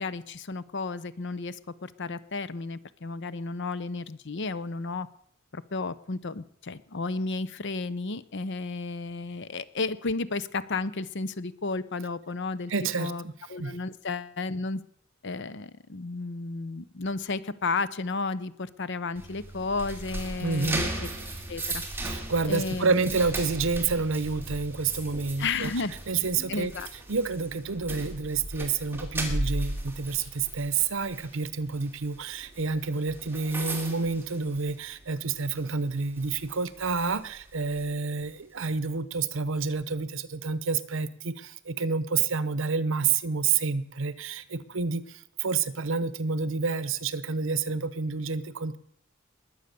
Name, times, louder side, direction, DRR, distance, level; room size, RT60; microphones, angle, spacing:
voice 1, 0.0-5.1 5.5-12.7 13.0-13.2 13.5-14.8 15.2-20.9 21.5-21.8 22.5-23.0 25.4-25.9 26.5-26.9, left 3 dB, 60° left, 16 dB, 0.8 m, -33 dB
voice 2, 12.7-13.3 13.6-13.8 20.4-20.9 22.1-25.7 26.1-26.7 27.1-48.8, right 4 dB, 70° right, 16 dB, 0.9 m, -29 dB
sound 1, 19.2-35.1 35.4-35.7 36.2-37.8, right 1 dB, 10° right, 2.5 m, -37 dB
21.0 x 8.1 x 6.9 m, 0.69 s
head